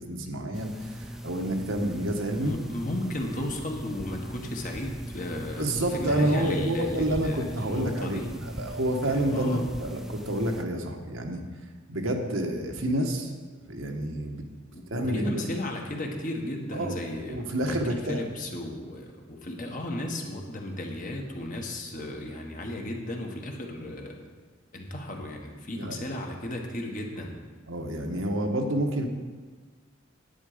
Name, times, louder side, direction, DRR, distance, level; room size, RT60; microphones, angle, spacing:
voice 1, 0.0-2.5 5.3-11.4 11.9-13.3 13.6-14.4 14.9-15.4 16.7-17.0 17.2-18.2 25.7-26.0 27.7-29.1, right 1 dB, 80° right, 3 dB, 1.3 m, -29 dB
sound 1, 0.5-10.6, equal, ahead, 0.6 m, -40 dB
voice 2, 2.3-8.4 9.0-9.7 14.7-24.2 24.7-27.4, left 1 dB, 40° left, 2 dB, 1.4 m, -35 dB
10.5 x 8.8 x 5.1 m, 1.4 s
head